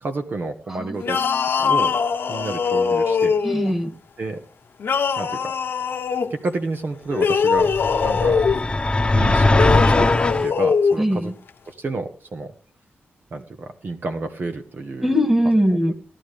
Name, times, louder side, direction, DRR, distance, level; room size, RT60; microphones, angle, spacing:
voice 1, 0.0-1.2 1.6-2.0 2.3-3.3 4.2-4.4 5.2-5.5 6.3-7.7 8.0-8.4 9.1-10.1 10.4-11.3 11.6-12.5 13.3-15.1 15.9-16.0, right 3 dB, 55° right, 6 dB, 1.3 m, -30 dB
voice 2, 0.8-1.5 3.4-3.9 11.0-11.3 15.0-15.9, equal, 10° right, 5 dB, 2.2 m, -21 dB
sound 1, 1.0-3.7 4.8-6.3 7.1-8.6 9.5-11.0, left 5 dB, 70° left, 1.0 m, -21 dB
sound 2, 7.6-10.5, left 2 dB, 20° left, 1.1 m, -19 dB
17.0 x 11.0 x 3.4 m, 0.40 s
cardioid pair, 85°, 4 cm